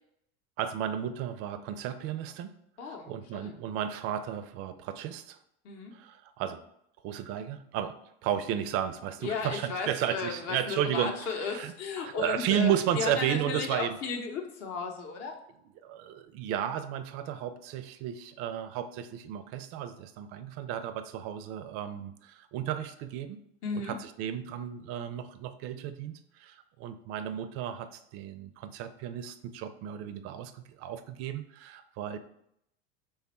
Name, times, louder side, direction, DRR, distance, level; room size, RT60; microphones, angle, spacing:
voice 1, 0.6-2.5 2.9-5.4 5.9-6.6 7.0-8.0 8.2-11.7 12.0-14.0 15.8-23.4 23.9-32.2, right 10 dB, 45° right, 11 dB, 0.4 m, -33 dB
voice 2, 2.8-3.6 5.6-5.9 9.2-15.3 23.6-24.0, left 5 dB, 45° left, 3 dB, 0.8 m, -35 dB
3.3 x 2.3 x 4.1 m, 0.75 s
hypercardioid pair, 90°, 33 cm